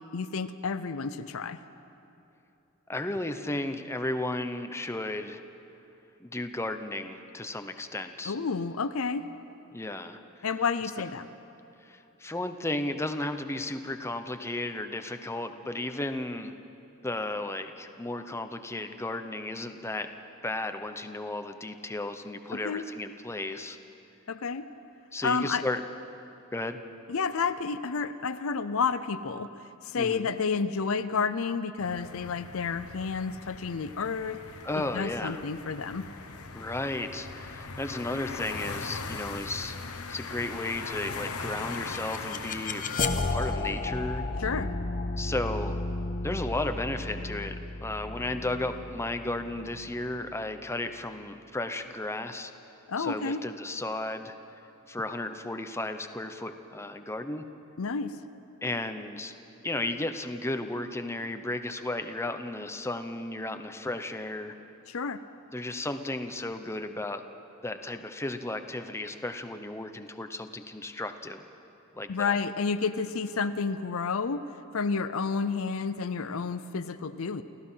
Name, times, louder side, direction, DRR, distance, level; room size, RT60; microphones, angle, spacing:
voice 1, 0.1-1.6 8.2-9.3 10.4-11.3 22.5-22.9 24.3-24.7 25.2-25.7 27.1-29.5 29.8-34.4 34.7-36.1 44.4-44.7 52.9-53.4 57.8-58.2 64.9-65.2 72.1-74.5 74.7-77.4, left 5 dB, 70° left, 12 dB, 0.6 m, -30 dB
voice 2, 2.9-5.4 6.2-8.4 9.7-10.4 11.8-16.5 17.0-20.1 20.4-23.8 25.1-25.8 26.5-26.8 29.9-30.3 34.6-35.4 36.5-42.8 43.3-44.2 45.2-45.8 46.2-52.5 53.0-54.3 54.9-57.4 58.6-59.3 59.6-64.6 65.5-67.2 67.6-71.4 71.9-72.4, left 2 dB, 10° left, 7 dB, 0.8 m, -34 dB
sound 1, 31.8-43.1, left 4 dB, 85° left, 1.3 m, -40 dB
sound 2, 41.5-50.5, left 2 dB, 40° left, 1.0 m, -33 dB
29.0 x 15.5 x 5.7 m, 2.9 s
head